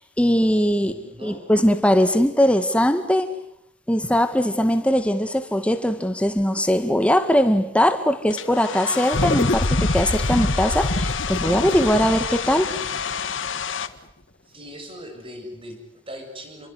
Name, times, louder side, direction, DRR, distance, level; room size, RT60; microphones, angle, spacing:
voice 1, 0.2-0.9 1.2-3.3 3.9-12.7, equal, 5° left, 2.1 m, -20 dB
voice 2, 0.8-1.5 14.5-16.7, equal, 30° right, 6.9 m, -40 dB
Domestic sounds home sounds, 8.3-13.9, left 7 dB, 75° left, 1.6 m, -29 dB
sound 1, 9.1-13.8, left 1 dB, 55° left, 1.7 m, -25 dB
29.5 x 23.5 x 8.2 m
head